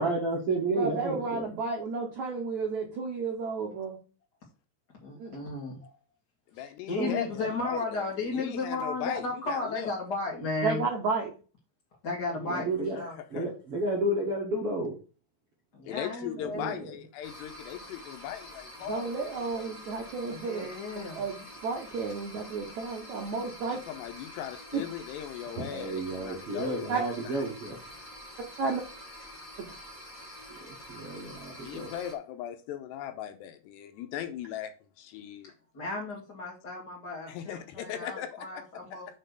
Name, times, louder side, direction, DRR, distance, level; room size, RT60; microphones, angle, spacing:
voice 1, 0.0-1.4 12.4-13.0 13.3-14.9 16.4-16.8 25.6-27.8 30.5-31.9, right 2 dB, 60° right, 1.6 m, -31 dB
voice 2, 0.7-4.0 5.2-5.3 7.0-7.1 10.6-11.3 18.9-20.7 20.9-23.8 24.7-24.8 26.9-27.0 28.6-28.8, right 4 dB, 75° right, 1.7 m, -32 dB
voice 3, 5.0-5.9 6.5-10.8 12.0-13.2 15.7-16.7 20.3-21.2 35.7-39.1, left 3 dB, 45° left, 1.3 m, -34 dB
voice 4, 6.5-9.9 13.0-13.5 15.8-19.7 23.7-27.4 31.6-34.7 35.0-35.5 37.3-38.6 38.9-39.0, left 10 dB, 85° left, 2.7 m, -39 dB
sound 1, 17.2-32.1, equal, 15° left, 1.8 m, -47 dB
6.4 x 4.4 x 6.5 m
omnidirectional pair, 5.1 m